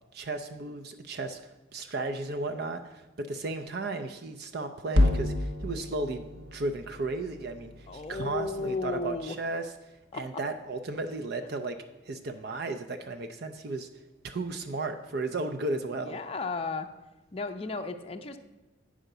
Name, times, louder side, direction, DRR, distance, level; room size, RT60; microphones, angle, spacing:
voice 1, 0.1-1.4 1.7-9.7 10.1-13.9 14.2-16.2, right 2 dB, 55° right, 6 dB, 0.5 m, -34 dB
sound 1, 4.9-9.3, left 1 dB, 70° right, 1.0 m, -30 dB
voice 2, 7.9-9.4 10.1-10.4 16.0-16.9 17.3-18.4, left 3 dB, 30° left, 5 dB, 0.5 m, -34 dB
9.1 x 5.0 x 6.6 m, 1.1 s
head